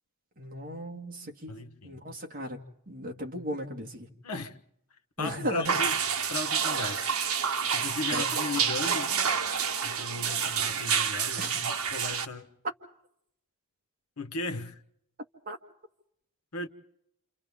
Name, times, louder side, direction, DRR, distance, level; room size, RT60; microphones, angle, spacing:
voice 1, 0.4-1.6 1.8-2.6 2.9-4.1 5.2-5.8 8.1-8.3 11.4-11.7 15.5-15.6, equal, 40° right, 2.3 m, -36 dB
voice 2, 1.5-2.0 4.2-4.6 5.2-5.9 6.3-7.1 7.7-9.2 9.8-12.5 14.2-14.8 16.5-16.7, left 3 dB, 85° left, 1.4 m, -36 dB
sound 1, 5.6-12.2, right 6 dB, 70° right, 1.4 m, -28 dB
30.0 x 28.5 x 3.7 m
head